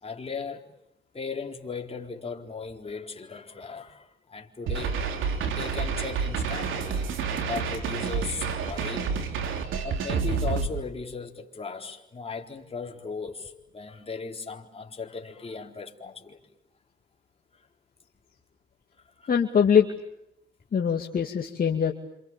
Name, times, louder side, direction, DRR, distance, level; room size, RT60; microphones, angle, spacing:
voice 1, 0.0-0.6 1.1-7.1 7.4-9.2 9.7-16.4 19.2-19.3, left 4 dB, 30° left, 4.2 m, -37 dB
sound 1, 4.7-10.7, right 5 dB, 80° right, 3.6 m, -29 dB
voice 2, 19.3-19.9 20.7-21.9, left 7 dB, 45° left, 2.4 m, -22 dB
28.0 x 27.5 x 7.4 m
cardioid pair, 90°, 20 cm